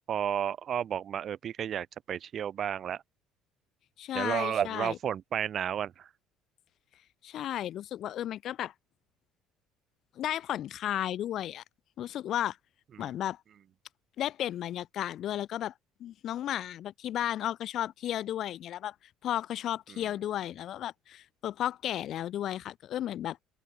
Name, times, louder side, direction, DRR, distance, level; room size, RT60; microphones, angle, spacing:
voice 1, 0.1-3.0 4.1-6.1 13.0-13.1, right 9 dB, 45° right, 0.4 m, -32 dB
voice 2, 4.0-5.0 7.2-8.7 10.2-11.6 12.0-12.6 13.0-13.4 14.2-15.7 16.0-18.9 19.2-23.4, left 11 dB, 55° left, 2.4 m, -33 dB
open air
cardioid pair, 105°, 0 cm